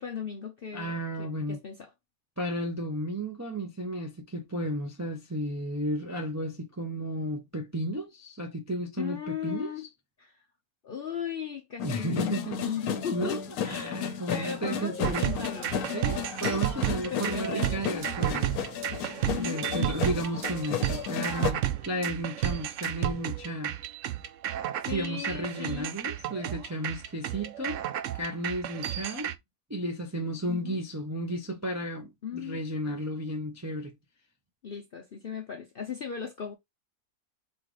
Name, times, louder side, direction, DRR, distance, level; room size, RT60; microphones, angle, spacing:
voice 1, 0.0-1.9 9.0-9.9 10.2-10.4 10.8-14.0 14.3-15.8 16.8-17.9 19.2-20.0 24.8-25.9 30.5-30.8 32.2-32.6 34.6-36.5, left 7 dB, 60° left, 0.6 m, -37 dB
voice 2, 0.7-1.6 2.4-9.7 11.8-12.6 12.8-15.3 15.9-18.6 19.4-23.7 24.9-27.8 28.1-29.3 29.7-33.9, right 1 dB, 25° right, 0.4 m, -33 dB
sound 1, 11.8-21.5, left 8 dB, 75° left, 1.2 m, -34 dB
sound 2, 15.0-29.4, right 12 dB, 70° right, 0.8 m, -32 dB
4.0 x 3.9 x 3.2 m
omnidirectional pair, 1.6 m